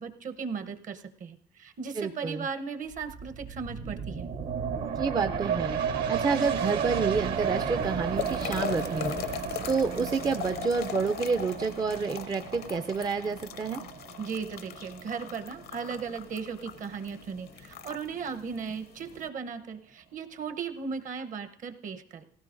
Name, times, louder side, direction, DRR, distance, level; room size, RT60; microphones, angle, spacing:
voice 1, 0.0-4.3 14.2-22.2, right 5 dB, 50° right, 9 dB, 0.8 m, -37 dB
voice 2, 1.9-2.5 5.0-5.8 6.1-9.2 9.7-13.8, right 4 dB, 25° right, 8 dB, 0.4 m, -29 dB
sound 1, 2.9-16.2 16.6-16.7, right 7 dB, 70° right, 1.3 m, -33 dB
sound 2, 6.3-19.3, left 9 dB, 70° left, 0.6 m, -41 dB
18.5 x 16.0 x 2.5 m, 0.70 s
cardioid pair, 110°, 17 cm